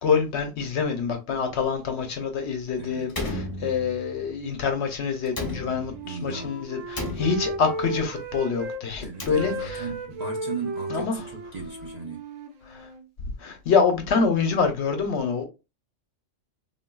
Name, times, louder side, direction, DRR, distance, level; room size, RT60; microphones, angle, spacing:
voice 1, 0.0-9.8 10.9-11.2 12.7-12.9 13.4-15.5, left 5 dB, 65° left, 0.9 m, -26 dB
voice 2, 2.8-3.1 6.0-6.6 9.0-12.2, right 5 dB, 45° right, 0.5 m, -36 dB
Slam, 3.1-4.2 5.3-6.2 6.9-7.8 8.9-9.9, left 2 dB, 20° left, 0.7 m, -34 dB
Wind instrument woodwind instrument, 5.4-8.8 9.1-13.0, right 1 dB, 75° right, 1.0 m, -35 dB
3.7 x 2.3 x 2.2 m
omnidirectional pair, 1.3 m